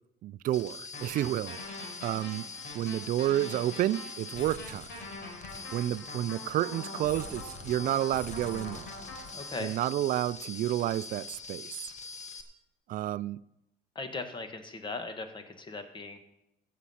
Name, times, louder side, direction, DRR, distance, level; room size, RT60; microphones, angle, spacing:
voice 1, 0.2-1.8 2.0-2.5 2.7-4.9 5.7-8.9 9.6-11.9 12.9-13.4, right 13 dB, 55° right, 0.4 m, -30 dB
sound 1, 0.5-12.4, left 4 dB, 45° left, 1.5 m, -44 dB
sound 2, 0.9-9.5, left 2 dB, 75° left, 4.6 m, -44 dB
voice 2, 9.3-9.7 13.9-16.2, left 3 dB, 30° left, 1.7 m, -38 dB
15.0 x 7.5 x 5.7 m
cardioid pair, 110°, 17 cm